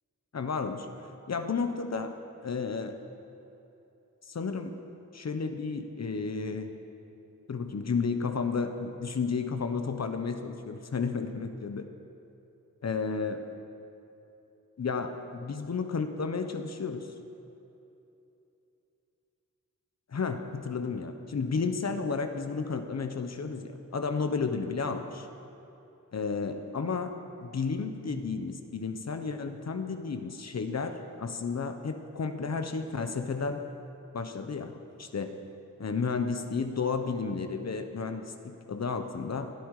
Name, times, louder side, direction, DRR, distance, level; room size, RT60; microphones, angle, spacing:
voice 1, 0.3-0.9 1.3-2.2 2.4-3.0 4.3-4.7 5.1-6.7 7.5-11.9 12.8-13.5 14.8-17.1 20.1-25.3 26.1-33.6 34.1-34.7 35.0-35.4 35.8-39.5, left 4 dB, 55° left, 7 dB, 1.1 m, -32 dB
21.0 x 13.0 x 5.0 m, 2.9 s
wide cardioid pair, 85°, 32 cm